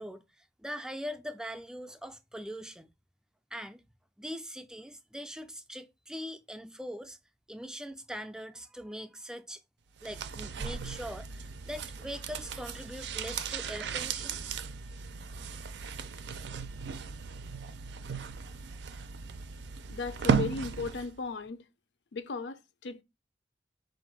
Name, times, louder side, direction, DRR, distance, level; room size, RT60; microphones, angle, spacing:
voice 1, 0.0-2.9 3.5-3.8 4.2-7.2 7.5-9.6 10.0-14.4, equal, 5° right, 0.3 m, -42 dB
sound 1, 10.0-21.2 21.5-21.6, right 5 dB, 75° right, 0.4 m, -36 dB
voice 2, 19.9-21.6 22.1-23.0, left 4 dB, 90° left, 0.5 m, -36 dB
4.1 x 2.6 x 4.6 m
head